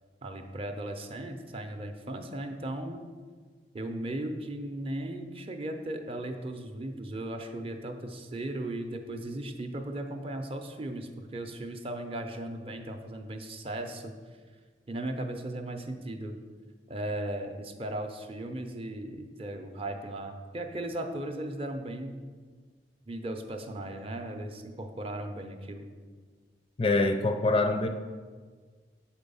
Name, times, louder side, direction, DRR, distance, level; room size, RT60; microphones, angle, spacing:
voice 1, 0.2-3.1 3.7-14.1 14.9-16.4 16.9-22.2 23.1-25.9, right 1 dB, 30° right, 5 dB, 0.6 m, -37 dB
voice 2, 26.8-27.9, left 2 dB, 30° left, 6 dB, 0.4 m, -25 dB
7.5 x 4.4 x 5.4 m, 1.5 s
head